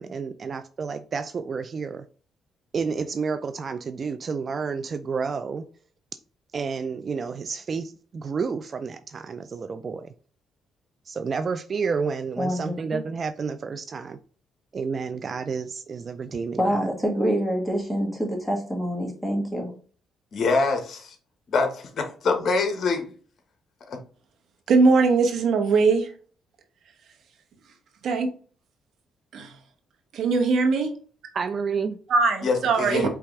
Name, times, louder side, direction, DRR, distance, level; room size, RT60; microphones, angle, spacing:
voice 1, 0.0-2.0 2.7-5.6 6.5-10.1 11.1-14.2 14.7-16.8 31.3-32.0, right 5 dB, 45° right, 0.3 m, -30 dB
voice 2, 12.4-13.0 16.6-19.7, equal, 5° right, 1.9 m, -26 dB
voice 3, 20.3-21.1 21.5-21.7 22.2-23.1 32.4-33.1, left 4 dB, 60° left, 1.2 m, -24 dB
voice 4, 24.7-26.1 28.0-28.3 29.3-29.6 30.1-30.9 32.1-33.1, right 4 dB, 70° right, 1.0 m, -20 dB
4.8 x 3.3 x 3.2 m
cardioid pair, 90°, 0 cm